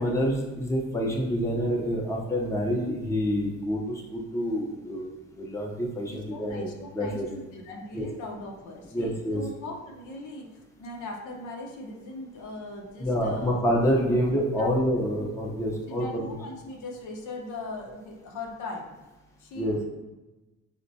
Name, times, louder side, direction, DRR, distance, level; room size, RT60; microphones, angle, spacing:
voice 1, 0.0-6.7 6.9-7.2 8.0-8.1 8.9-9.4 13.0-16.3 19.5-19.8, equal, 10° left, -3 dB, 0.7 m, -27 dB
voice 2, 6.1-13.6 14.6-14.7 14.9-15.1 15.9-18.9 19.4-19.8, left 2 dB, 75° left, 0 dB, 0.7 m, -39 dB
4.2 x 2.1 x 2.7 m, 1.1 s
cardioid pair, 90°, 30 cm